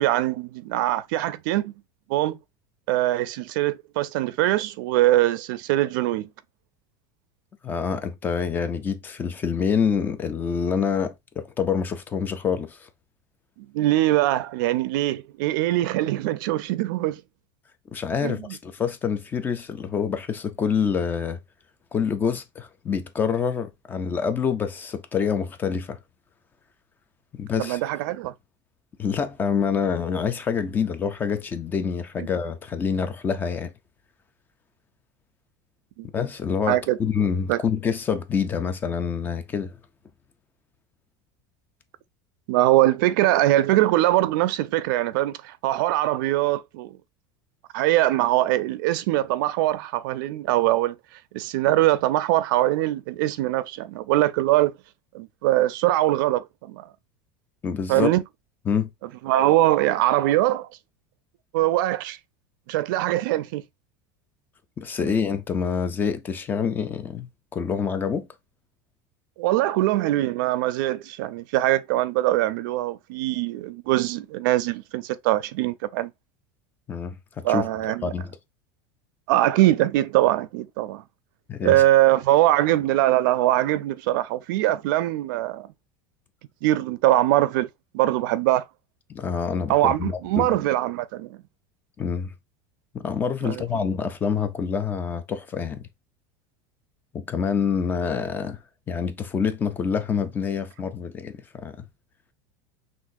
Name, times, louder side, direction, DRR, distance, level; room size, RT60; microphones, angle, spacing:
voice 1, 0.0-1.7 2.1-2.4 2.9-6.3 13.7-17.2 18.2-18.6 27.6-28.3 32.2-32.3 36.0-36.1 36.7-37.0 37.5-37.6 42.5-46.9 47.7-50.9 51.3-54.7 55.1-56.8 57.9-58.2 59.2-60.7 61.5-62.2 62.7-63.6 65.0-65.1 69.4-76.1 77.4-78.1 79.3-81.0 81.6-85.7 86.6-87.7 87.9-88.6 89.7-91.4 93.4-93.6, right 15 dB, 65° right, 0.5 m, -22 dB
voice 2, 7.6-12.9 17.9-21.4 21.9-26.0 27.3-27.8 29.0-33.7 36.1-39.7 57.6-58.1 58.7-58.9 64.8-68.3 76.9-77.7 78.0-78.4 81.5-81.8 89.1-90.6 92.0-92.3 92.9-95.9 97.1-98.6 98.9-101.8, left 6 dB, 15° left, 0.4 m, -26 dB
6.0 x 2.5 x 2.6 m
supercardioid pair, 170°, 12 cm